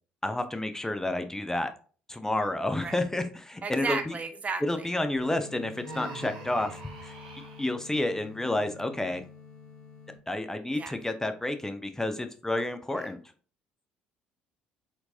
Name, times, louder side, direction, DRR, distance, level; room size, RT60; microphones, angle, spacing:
voice 1, 0.2-1.7 2.1-4.2 4.6-7.1 7.6-9.2 10.3-13.2, left 1 dB, 10° left, 8 dB, 0.6 m, -30 dB
voice 2, 3.6-4.9 10.7-10.9 12.9-13.0, right 4 dB, 30° right, 8 dB, 0.6 m, -34 dB
sound 1, 5.2-10.2, left 4 dB, 80° left, 1.3 m, -47 dB
Human voice, 5.8-7.7, right 2 dB, 80° right, 0.9 m, -43 dB
4.4 x 3.9 x 2.6 m, 0.41 s
figure-of-eight pair, 55°, 4 cm